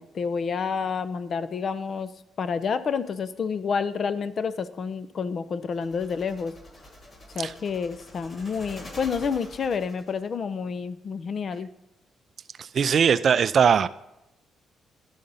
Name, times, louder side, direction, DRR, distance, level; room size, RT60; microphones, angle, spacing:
voice 1, 0.0-2.1 2.4-6.5 7.3-11.7, left 5 dB, 50° left, 13 dB, 0.4 m, -29 dB
sound 1, 5.7-10.3, left 1 dB, 35° left, 1.7 m, -46 dB
voice 2, 12.6-13.9, right 7 dB, 55° right, 14 dB, 0.4 m, -20 dB
11.5 x 3.9 x 5.5 m, 0.89 s
cardioid pair, 90°, 0 cm